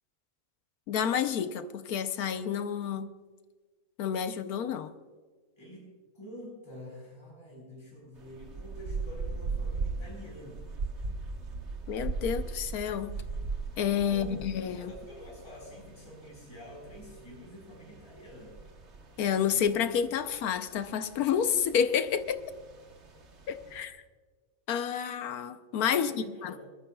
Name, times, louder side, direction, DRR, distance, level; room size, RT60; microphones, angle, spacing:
voice 1, 0.9-3.1 4.0-4.9 11.9-13.1 13.8-14.9 19.2-22.4 23.5-24.0 24.7-26.5, left 8 dB, 85° left, 10 dB, 1.3 m, -29 dB
voice 2, 5.6-10.6 14.1-14.3 14.7-18.6 25.9-26.7, left 1 dB, 20° left, -4 dB, 4.6 m, -47 dB
sound 1, 8.2-23.8, right 4 dB, 50° right, 1.4 m, -40 dB
25.0 x 13.5 x 2.3 m, 1.4 s
omnidirectional pair, 1.5 m